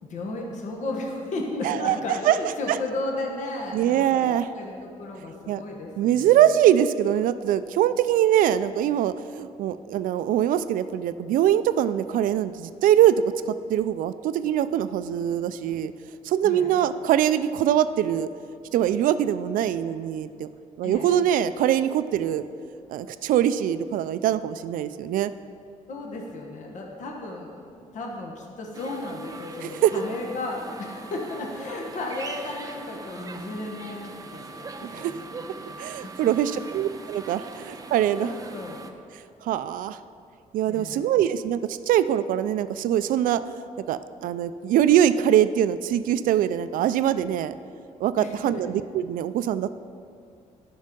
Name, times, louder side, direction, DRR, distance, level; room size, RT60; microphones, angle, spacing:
voice 1, 0.0-6.4 16.4-16.8 20.8-21.2 25.9-35.3 35.7-36.6 37.4-37.7 38.2-38.8 40.6-41.1 48.2-48.6, left 2 dB, 60° left, 0 dB, 1.3 m, -34 dB
voice 2, 1.6-2.0 2.2-2.4 2.7-2.8 3.7-4.4 5.5-5.6 6.0-13.2 13.7-15.9 16.2-18.3 18.7-20.5 20.8-22.5 22.9-25.3 29.8-29.9 34.9-35.1 35.8-38.3 39.4-40.0 40.5-43.4 43.9-47.5 48.0-49.7, right 11 dB, 80° right, 13 dB, 0.4 m, -23 dB
sound 1, 28.7-38.9, right 3 dB, 25° right, 0.6 m, -41 dB
11.5 x 5.5 x 5.3 m, 2.4 s
cardioid pair, 115°, 14 cm